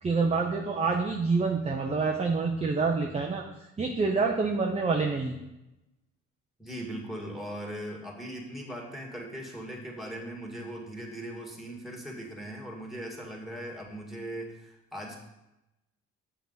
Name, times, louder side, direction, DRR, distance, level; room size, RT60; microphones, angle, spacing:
voice 1, 0.0-3.4 3.8-5.4, right 4 dB, 20° right, 2 dB, 0.7 m, -27 dB
voice 2, 6.6-15.2, right 1 dB, ahead, 0 dB, 2.0 m, -39 dB
7.0 x 6.8 x 4.0 m, 0.94 s
cardioid pair, 90°, 30 cm